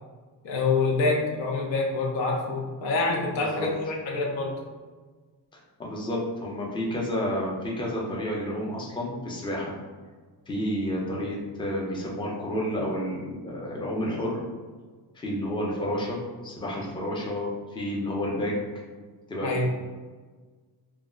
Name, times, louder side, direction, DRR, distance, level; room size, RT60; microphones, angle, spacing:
voice 1, 0.4-4.5 19.4-19.6, left 3 dB, 80° left, -1 dB, 0.8 m, -26 dB
voice 2, 3.3-3.7 5.5-9.8 10.5-14.4 15.1-18.5 19.3-19.6, equal, 10° left, -3 dB, 0.5 m, -30 dB
2.3 x 2.0 x 3.6 m, 1.4 s
cardioid pair, 115°, 43 cm